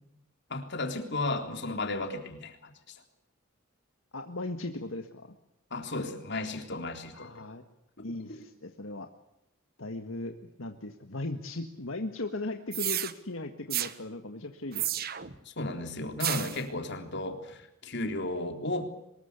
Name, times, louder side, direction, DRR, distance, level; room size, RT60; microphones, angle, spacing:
voice 1, 0.5-3.0 5.7-7.3 8.3-8.4 15.5-18.9, left 2 dB, 55° left, 5 dB, 3.6 m, -34 dB
voice 2, 4.1-5.3 7.1-7.6 8.0-9.1 9.8-15.0, left 2 dB, 75° left, 6 dB, 1.8 m, -38 dB
sound 1, 12.7-13.1 13.7-13.9 14.7-15.4 16.2-16.6, right 12 dB, 50° right, 1.4 m, -31 dB
24.5 x 21.0 x 8.3 m, 0.85 s
head